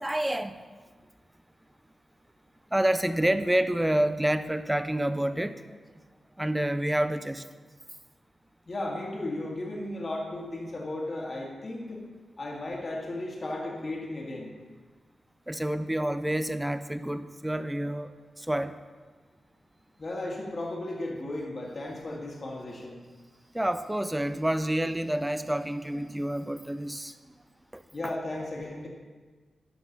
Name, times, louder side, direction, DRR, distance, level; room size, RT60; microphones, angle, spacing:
voice 1, 0.0-0.5 2.7-5.8 6.4-7.4 15.5-18.8 23.5-27.1 27.7-28.1, right 1 dB, 10° right, 11 dB, 0.4 m, -28 dB
voice 2, 8.7-12.0 12.4-14.5 20.0-23.0 27.9-28.9, left 1 dB, 40° left, -3 dB, 1.7 m, -35 dB
11.0 x 6.0 x 4.0 m, 1.4 s
wide cardioid pair, 95°, 0 cm